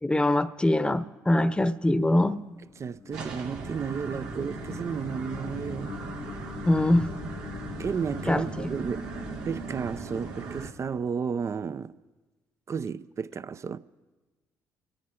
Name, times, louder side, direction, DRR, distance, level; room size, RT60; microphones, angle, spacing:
voice 1, 0.0-2.4 6.7-7.2 8.3-8.7, left 1 dB, 15° left, 0.9 m, -23 dB
sound 1, 2.3-11.6, left 7 dB, 45° left, 0.6 m, -43 dB
voice 2, 2.8-6.0 7.8-9.1 9.5-11.9 12.7-13.8, right 6 dB, 40° right, 0.5 m, -33 dB
sound 2, 3.1-10.7, right 4 dB, 85° right, 1.9 m, -38 dB
27.5 x 9.9 x 5.0 m
supercardioid pair, 60°, 7 cm